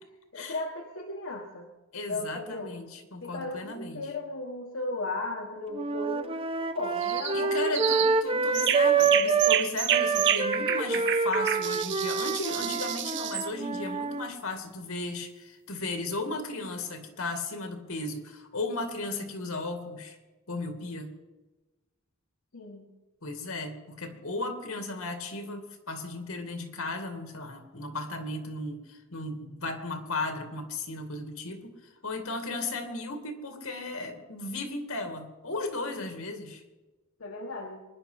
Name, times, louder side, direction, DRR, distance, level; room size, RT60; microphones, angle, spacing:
voice 1, 0.3-1.7 2.1-2.7 3.2-7.7 22.5-22.8 37.2-37.8, left 2 dB, 65° left, 0 dB, 1.4 m, -36 dB
voice 2, 1.9-4.1 7.3-20.2 20.5-21.1 23.2-36.6, left 2 dB, 80° left, 5 dB, 2.3 m, -35 dB
sound 1, 5.7-9.6 9.9-14.3, right 5 dB, 25° right, 0.7 m, -27 dB
sound 2, 7.0-7.4 7.7-8.2 8.5-13.5, right 10 dB, 55° right, 0.9 m, -29 dB
24.0 x 10.5 x 5.7 m, 1.2 s
head